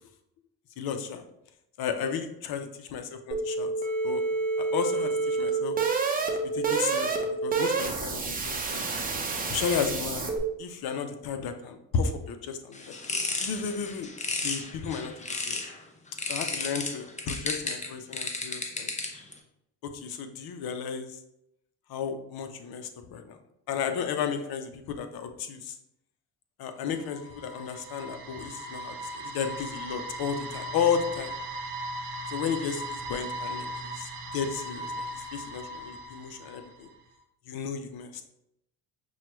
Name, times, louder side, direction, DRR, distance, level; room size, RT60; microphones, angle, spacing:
voice 1, 0.8-1.2 1.8-3.7 4.0-4.2 4.6-5.8 6.5-8.9 9.5-10.3 10.6-14.1 14.4-15.6 16.3-18.9 19.8-21.2 21.9-23.4 23.7-25.8 26.6-31.3 32.3-36.9 37.5-38.3, left 6 dB, 65° left, 8 dB, 0.7 m, -33 dB
sound 1, 3.3-10.4, right 4 dB, 20° right, 0.7 m, -28 dB
sound 2, 12.7-15.8 16.2-19.3, left 3 dB, 20° left, 0.6 m, -33 dB
sound 3, 26.8-36.9, right 1 dB, 80° right, 0.9 m, -38 dB
5.6 x 2.3 x 3.1 m, 0.81 s
supercardioid pair, 80°, 40 cm